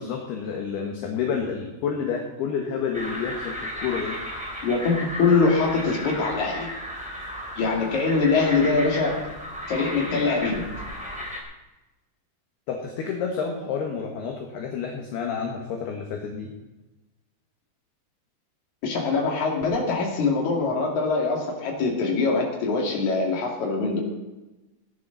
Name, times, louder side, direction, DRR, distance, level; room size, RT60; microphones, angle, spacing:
voice 1, 0.0-4.2 12.7-16.5, left 6 dB, 65° left, 1 dB, 3.0 m, -29 dB
sound 1, 2.9-11.4, equal, 5° right, 1.6 m, -34 dB
voice 2, 4.6-6.7 7.6-9.2 9.7-10.7 18.8-24.0, left 4 dB, 45° left, 0 dB, 3.1 m, -23 dB
18.0 x 10.5 x 4.0 m, 1.1 s
omnidirectional pair, 5.7 m